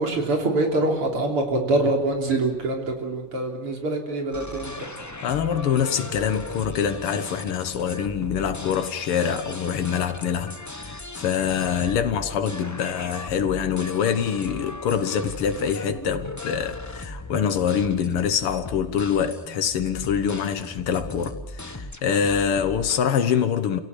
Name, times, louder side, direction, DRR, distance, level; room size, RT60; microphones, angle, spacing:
voice 1, 0.0-4.9, right 2 dB, 90° right, 4.3 m, -24 dB
sound 1, 4.3-23.0, left 2 dB, 20° left, 0.4 m, -38 dB
voice 2, 5.2-23.8, left 7 dB, 90° left, 2.2 m, -25 dB
28.5 x 17.0 x 8.4 m
omnidirectional pair, 2.4 m